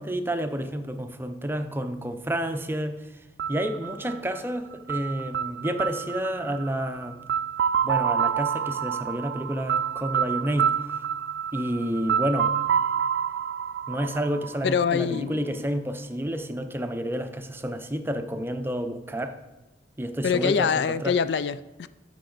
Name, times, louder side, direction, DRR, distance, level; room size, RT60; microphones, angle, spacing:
voice 1, 0.0-3.1 3.5-7.2 7.8-10.8 11.5-12.5 13.9-19.4 20.0-20.7 21.0-21.1, equal, 10° right, 0.6 m, -30 dB
sound 1, 3.4-15.2, right 8 dB, 70° right, 0.3 m, -28 dB
voice 2, 14.6-15.6 20.2-21.9, left 6 dB, 65° left, 0.3 m, -25 dB
13.0 x 6.0 x 3.9 m
head